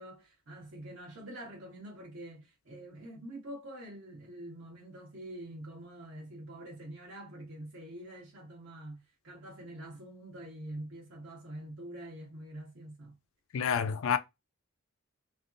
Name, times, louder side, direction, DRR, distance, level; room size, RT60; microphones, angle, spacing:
voice 1, 0.0-13.2, right 1 dB, 60° right, 1.1 m, -46 dB
voice 2, 13.5-14.2, left 7 dB, 65° left, 0.4 m, -28 dB
3.4 x 2.1 x 2.5 m
head